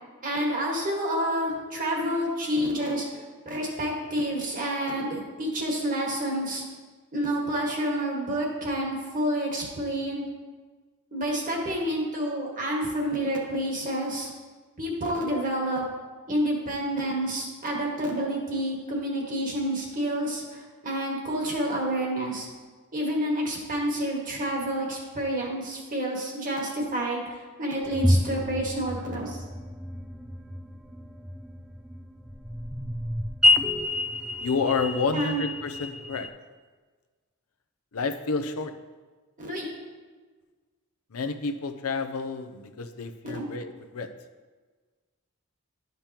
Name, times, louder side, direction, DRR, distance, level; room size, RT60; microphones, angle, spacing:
voice 1, 0.2-3.1 3.5-6.6 7.1-10.2 11.1-14.3 14.8-15.8 16.3-22.5 22.9-29.4 35.1-35.4 39.4-39.6 43.2-43.4, right 1 dB, 40° right, -1 dB, 1.6 m, -29 dB
sound 1, 27.8-36.3, left 1 dB, 5° right, 0.3 m, -28 dB
voice 2, 34.4-36.3 37.9-38.7 41.1-44.1, left 4 dB, 70° left, 7 dB, 0.6 m, -29 dB
11.5 x 5.3 x 2.9 m, 1.4 s
head